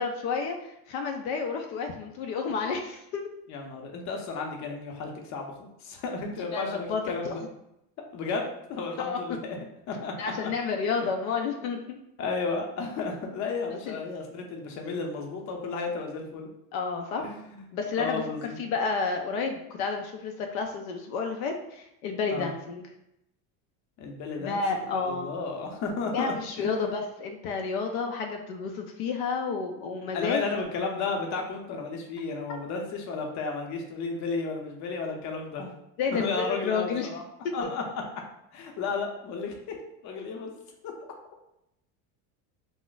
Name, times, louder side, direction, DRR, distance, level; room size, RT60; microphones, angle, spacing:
voice 1, 0.0-3.3 6.5-7.5 9.0-9.2 10.2-12.0 13.9-14.0 16.7-17.3 17.7-22.8 24.4-25.3 26.1-30.5 36.0-37.1 37.4-37.5, left 5 dB, 85° left, 3 dB, 0.5 m, -30 dB
voice 2, 3.5-7.4 8.1-9.6 9.9-10.5 12.2-16.5 17.2-17.7 18.0-18.6 22.3-22.5 24.0-26.9 30.1-35.7 36.1-37.2 37.5-38.0 38.5-39.8 40.0-40.5, left 4 dB, 45° left, 2 dB, 0.7 m, -33 dB
2.4 x 2.1 x 3.9 m, 0.82 s
supercardioid pair, 120°, 40 cm